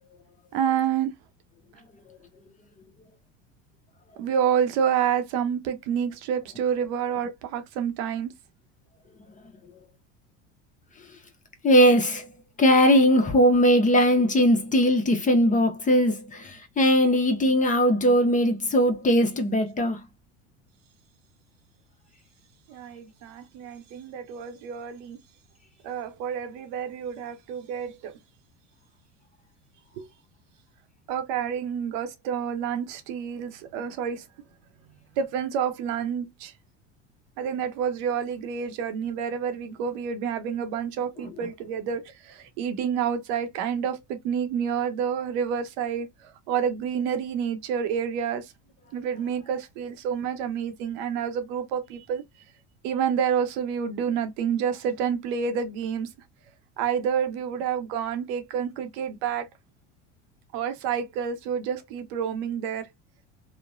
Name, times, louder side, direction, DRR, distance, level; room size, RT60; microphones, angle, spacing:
voice 1, 0.5-1.1 4.2-8.3 22.7-25.2 25.8-28.2 30.0-30.1 31.1-34.3 35.2-36.5 37.4-48.5 48.9-52.2 52.8-56.1 56.8-59.5 60.5-62.9, right 8 dB, 70° right, 0.7 m, -28 dB
voice 2, 11.6-12.3 12.6-20.0, equal, 20° left, 0.8 m, -20 dB
3.0 x 2.1 x 2.4 m
hypercardioid pair, 90°, 35 cm